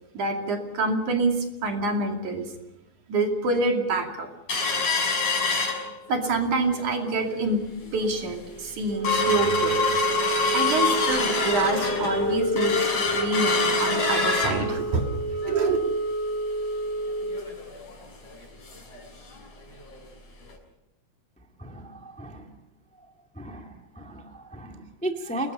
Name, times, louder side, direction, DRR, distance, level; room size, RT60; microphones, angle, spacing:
voice 1, 0.1-2.5 3.1-4.3 6.1-9.8 10.5-15.1 15.5-15.8, right 3 dB, 50° right, 3 dB, 3.7 m, -26 dB
sound 1, 4.5-6.4 6.8-6.9 7.2-7.5 8.0-8.1 8.5-19.0 19.3-19.4 19.8-20.0 20.5-20.6, left 2 dB, 40° left, 7.1 m, -25 dB
voice 2, 21.6-22.5 23.3-25.5, right 1 dB, 10° left, 2 dB, 0.4 m, -35 dB
29.5 x 20.5 x 5.7 m, 0.88 s
omnidirectional pair, 4.9 m